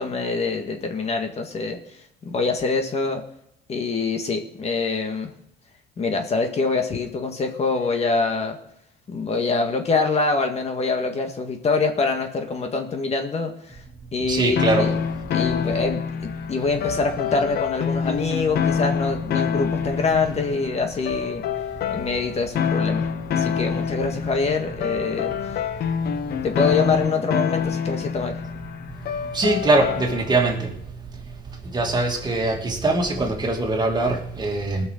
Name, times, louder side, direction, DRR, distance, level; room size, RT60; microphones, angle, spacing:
voice 1, 0.0-1.8 2.2-3.2 3.7-5.3 6.0-8.6 9.1-13.8 14.1-15.0 15.3-21.4 21.9-23.1 23.3-25.3 26.4-28.4, left 4 dB, 40° left, 5 dB, 1.8 m, -25 dB
voice 2, 14.3-14.8 29.4-30.5 31.7-34.8, right 2 dB, 25° right, 2 dB, 2.6 m, -22 dB
sound 1, 14.6-30.5, left 7 dB, 65° left, 1.0 m, -26 dB
19.0 x 6.4 x 6.5 m, 0.75 s
cardioid pair, 110°, 17 cm